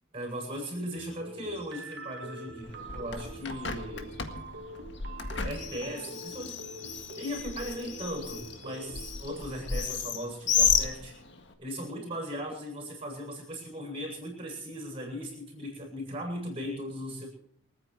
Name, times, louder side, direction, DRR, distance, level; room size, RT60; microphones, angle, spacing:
voice 1, 0.1-4.1 5.4-11.2 11.6-17.3, equal, 25° right, 1 dB, 7.9 m, -38 dB
sound 1, 0.9-9.1, right 1 dB, 50° right, 1.7 m, -45 dB
Bird, 2.6-11.5, left 6 dB, 55° left, 1.8 m, -33 dB
28.0 x 9.6 x 4.8 m, 0.65 s
head